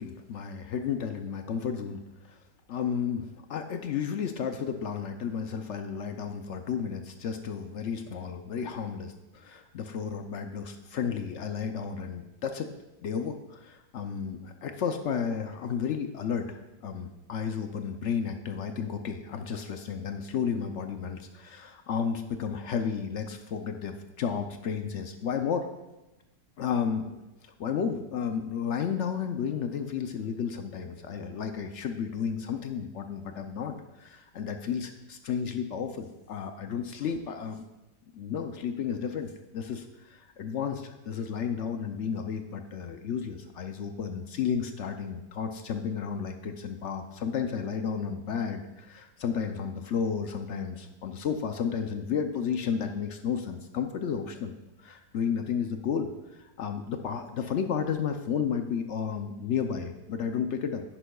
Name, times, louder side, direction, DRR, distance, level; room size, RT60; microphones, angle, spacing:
voice 1, 0.0-2.0 2.3-2.4 2.7-12.7 13.0-25.7 26.6-27.2 27.6-37.6 38.1-60.8, left 7 dB, 65° left, 6 dB, 0.7 m, -32 dB
10.0 x 10.0 x 2.3 m, 1.0 s
omnidirectional pair, 1.8 m